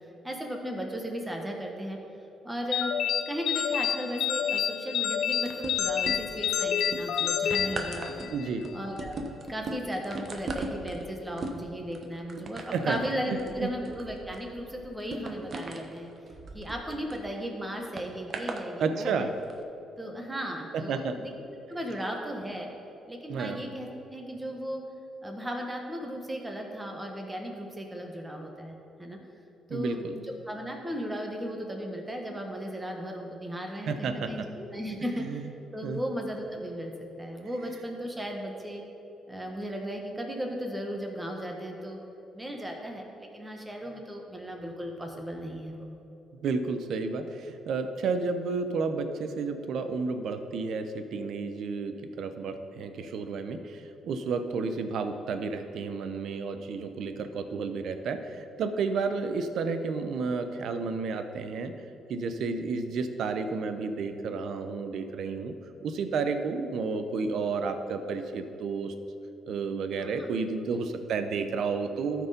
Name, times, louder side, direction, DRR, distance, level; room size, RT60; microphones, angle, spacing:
voice 1, 0.2-2.0 2.4-2.9 3.2-8.3 8.7-9.1 9.5-16.1 16.5-19.3 20.0-21.3 21.7-22.7 23.1-24.8 25.2-28.7 29.0-29.2 29.7-36.9 37.2-38.8 39.3-42.0 42.3-45.8 70.0-70.3 70.6-70.7, equal, 15° right, 1 dB, 1.5 m, -36 dB
sound 1, 2.7-8.5, left 8 dB, 75° left, 0.4 m, -29 dB
sound 2, 5.5-6.5 6.8-17.2 18.0-18.6 19.4-19.5, right 2 dB, 45° right, 1.0 m, -39 dB
voice 2, 8.3-8.6 12.7-13.0 13.3-13.7 18.8-19.3 20.7-21.2 23.3-23.6 29.7-30.1 33.9-34.5 35.2-35.4 35.8-36.0 46.4-61.7 62.1-65.5 65.8-68.9 69.5-72.3, right 4 dB, 70° right, 8 dB, 0.7 m, -31 dB
13.5 x 4.7 x 5.2 m, 3.0 s
cardioid pair, 90°, 0 cm